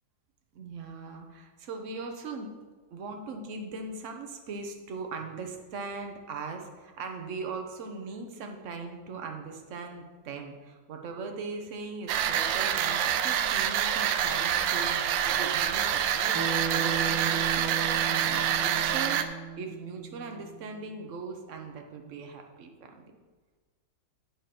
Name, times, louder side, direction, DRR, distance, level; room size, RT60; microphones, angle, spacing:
voice 1, 0.5-2.5 2.9-16.4 16.7-19.2 19.6-22.7 22.9-23.0, right 4 dB, 50° right, 3 dB, 1.1 m, -39 dB
sound 1, 12.1-19.2, right 9 dB, 85° right, 1.3 m, -27 dB
Bass guitar, 16.3-20.7, right 6 dB, 15° right, 1.3 m, -36 dB
8.8 x 5.1 x 5.9 m, 1.4 s
omnidirectional pair, 2.0 m